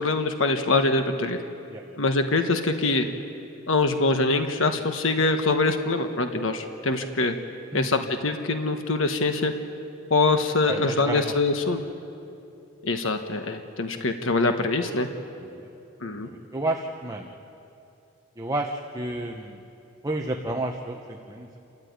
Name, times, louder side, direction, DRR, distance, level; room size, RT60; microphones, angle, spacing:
voice 1, 0.0-1.4 2.0-3.0 3.7-7.3 7.7-9.5 10.1-11.8 12.8-15.1 16.0-16.3, left 3 dB, 75° left, 6 dB, 1.3 m, -24 dB
voice 2, 10.7-11.3 11.6-11.7 15.5-15.6 16.1-17.3 18.4-19.6 20.0-21.6, right 2 dB, 20° right, 2 dB, 1.1 m, -31 dB
29.5 x 13.5 x 9.5 m, 2.8 s
head